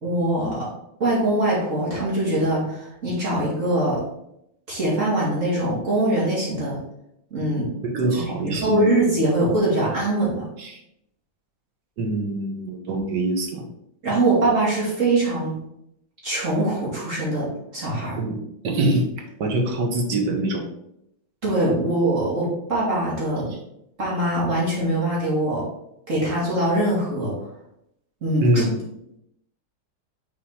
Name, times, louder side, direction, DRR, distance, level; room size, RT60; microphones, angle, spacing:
voice 1, 0.0-0.7 1.0-4.0 4.7-6.8 7.3-7.7 8.1-10.4 14.0-15.6 16.2-17.5 17.7-18.2 21.4-23.5 24.0-25.6 26.1-27.5 28.2-28.6, right 1 dB, 40° right, -7 dB, 2.5 m, -22 dB
voice 2, 7.8-8.9 10.6-10.8 12.0-13.7 18.2-18.4 18.6-19.0 19.4-20.6 28.4-28.7, right 1 dB, 65° right, 2 dB, 1.7 m, -24 dB
6.2 x 4.2 x 4.7 m, 0.78 s
omnidirectional pair, 2.1 m